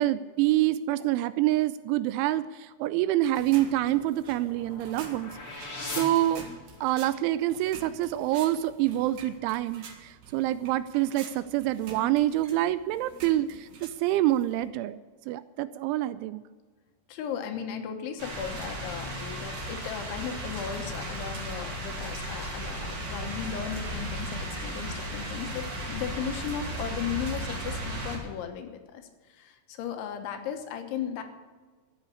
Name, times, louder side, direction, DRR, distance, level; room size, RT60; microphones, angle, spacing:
voice 1, 0.0-5.3 5.6-5.7 6.0-6.5 6.8-15.0 15.3-16.4, right 14 dB, 85° right, 14 dB, 2.8 m, -26 dB
sound 1, 3.2-14.7, right 4 dB, 55° right, 2.3 m, -48 dB
sound 2, 3.7-7.1, left 2 dB, 35° left, 4.0 m, -41 dB
voice 2, 17.1-29.0 29.3-31.2, left 8 dB, 75° left, 6 dB, 3.4 m, -36 dB
sound 3, 18.2-28.2, right 1 dB, 40° right, 4.5 m, -35 dB
13.5 x 8.8 x 8.4 m, 1.4 s
omnidirectional pair, 5.7 m